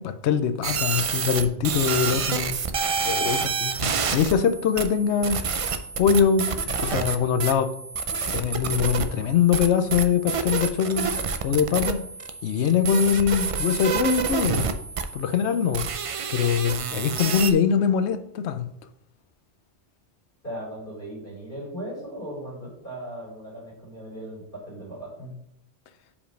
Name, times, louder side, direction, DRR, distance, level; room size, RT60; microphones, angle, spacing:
voice 1, 0.0-2.6 3.0-5.4 6.0-7.7 8.3-11.1 11.4-12.0 12.4-14.7 15.1-15.9 16.3-18.7, left 7 dB, 75° left, 0.9 m, -23 dB
sound 1, 0.6-17.5, right 5 dB, 60° right, 0.3 m, -28 dB
voice 2, 20.4-25.3, right 1 dB, 45° left, 3.3 m, -37 dB
5.2 x 5.0 x 5.1 m
omnidirectional pair, 1.2 m